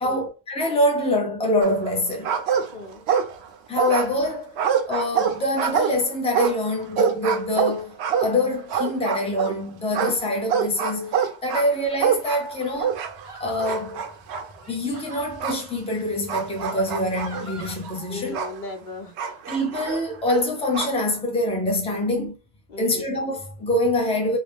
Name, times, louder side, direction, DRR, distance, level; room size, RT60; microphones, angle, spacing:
voice 1, 0.0-2.3 3.7-4.5 4.9-13.1 13.4-14.1 14.6-18.4 19.5-22.3 22.8-24.4, left 1 dB, 5° left, 0.5 m, -25 dB
sound 1, 1.6-2.0 2.2-3.5 3.8-9.6 9.9-13.3 13.6-14.5 15.4-15.6 16.3-18.6 19.2-21.0, right 7 dB, 80° right, 0.8 m, -25 dB
voice 2, 2.7-3.0 18.1-19.4 22.7-23.1, left 3 dB, 50° left, 0.9 m, -37 dB
sound 2, 13.2-13.8 14.5-15.3 16.2-17.8, equal, 35° right, 0.6 m, -41 dB
2.7 x 2.1 x 3.4 m
omnidirectional pair, 1.1 m